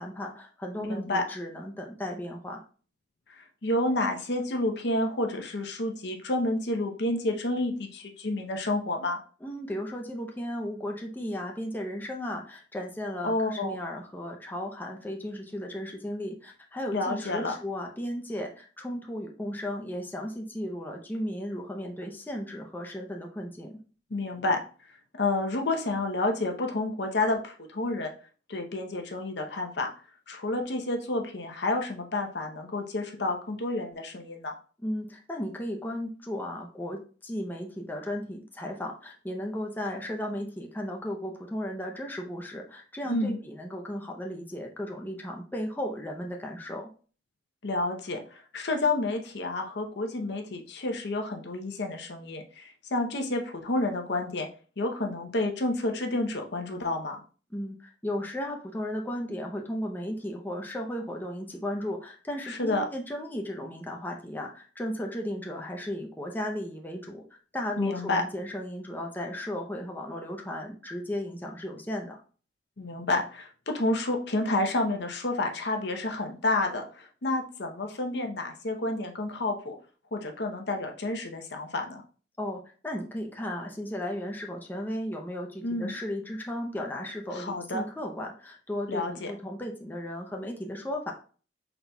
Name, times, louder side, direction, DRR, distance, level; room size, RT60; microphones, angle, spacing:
voice 1, 0.0-2.6 9.4-23.8 34.8-46.9 57.5-72.2 82.4-91.1, left 1 dB, 10° left, 1 dB, 0.6 m, -35 dB
voice 2, 0.9-1.2 3.3-9.2 13.2-13.8 16.9-17.5 24.1-24.6 25.1-28.1 28.5-29.9 30.3-34.5 43.0-43.4 47.6-54.5 54.8-57.2 62.5-62.8 67.8-68.2 72.8-79.7 80.1-82.0 85.6-85.9 87.3-87.8 88.9-89.3, left 2 dB, 65° left, 3 dB, 0.8 m, -30 dB
5.8 x 4.0 x 2.3 m, 0.39 s
head